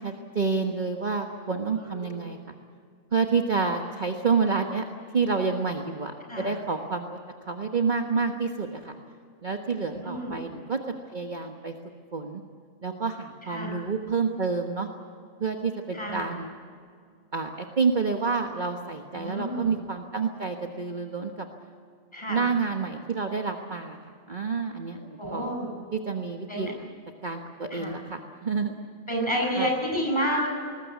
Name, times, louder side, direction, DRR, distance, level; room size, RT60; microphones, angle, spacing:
voice 1, 0.0-2.4 3.1-4.8 5.1-7.2 7.5-8.9 9.4-10.8 11.1-11.7 12.1-12.4 12.8-14.9 15.4-16.6 17.3-21.5 22.3-24.0 24.3-25.5 25.9-26.7 27.2-28.8 29.6-29.7, right 4 dB, 35° right, 3 dB, 1.4 m, -28 dB
voice 2, 1.8-2.2 6.3-6.5 10.0-10.4 13.5-13.7 15.9-16.3 19.1-19.7 22.1-22.4 25.2-25.7 26.5-26.7 27.7-27.9 29.1-30.5, equal, 20° left, -1 dB, 7.5 m, -29 dB
21.5 x 20.0 x 8.3 m, 2.2 s
omnidirectional pair, 1.5 m